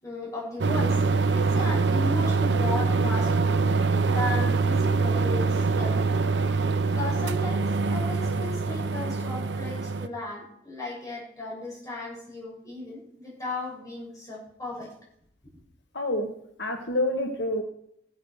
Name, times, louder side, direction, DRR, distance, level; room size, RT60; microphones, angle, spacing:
voice 1, 0.0-3.5 3.7-6.2 6.9-14.9, left 2 dB, 20° left, -4 dB, 7.3 m, -36 dB
sound 1, 0.6-10.1, right 4 dB, 80° right, 0.8 m, -24 dB
voice 2, 15.9-16.3 16.6-17.6, left 1 dB, 75° left, 3 dB, 1.4 m, -27 dB
16.0 x 8.0 x 6.4 m, 0.75 s
head